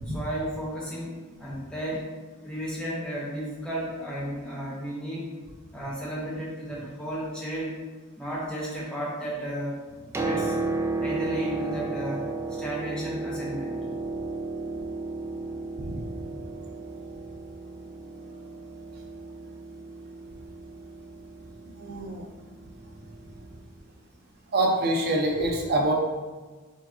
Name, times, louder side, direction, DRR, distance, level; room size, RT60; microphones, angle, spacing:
voice 1, 0.1-2.1 2.4-5.3 5.7-7.8 8.2-9.8 10.2-10.6 11.0-12.3 12.6-13.8, equal, 5° left, -7 dB, 1.1 m, -33 dB
Piano, 9.9-23.6 24.7-24.8, right 3 dB, 10° right, 0.3 m, -34 dB
voice 2, 21.8-22.2 24.5-25.9, right 1 dB, 45° right, 0 dB, 0.7 m, -25 dB
4.5 x 3.3 x 2.9 m, 1.3 s
head